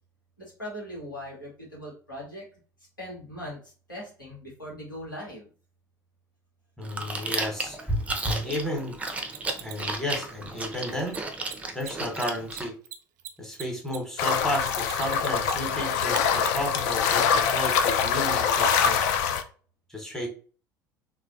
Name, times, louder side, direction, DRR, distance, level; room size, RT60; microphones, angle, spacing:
voice 1, 0.4-2.5 3.0-5.5, equal, 90° left, -4 dB, 1.1 m, -40 dB
voice 2, 6.8-9.0 9.6-11.2 11.7-12.7 13.4-19.0 19.9-20.3, left 1 dB, 5° left, 1 dB, 1.0 m, -32 dB
Chewing mastication, 6.8-12.7, right 2 dB, 15° right, 0.5 m, -34 dB
Mechanisms, 9.1-9.9 11.1-11.2 11.4-11.5 11.8-11.9 12.2-15.7 16.1-16.2 17.7-17.8, right 11 dB, 65° right, 0.4 m, -40 dB
sound 1, 14.2-19.4, left 7 dB, 60° left, 0.4 m, -24 dB
3.2 x 2.2 x 2.5 m, 0.40 s
figure-of-eight pair, 65°, 10 cm